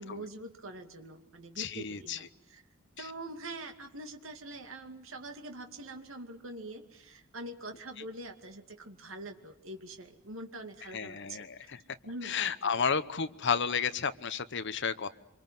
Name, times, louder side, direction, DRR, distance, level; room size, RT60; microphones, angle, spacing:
voice 1, 0.0-2.6 3.0-11.7 12.0-12.9, right 2 dB, 70° right, 5 dB, 2.4 m, -44 dB
voice 2, 1.6-2.2 10.9-11.8 12.2-15.1, left 6 dB, 55° left, 11 dB, 1.0 m, -32 dB
25.5 x 24.0 x 9.3 m, 0.82 s
head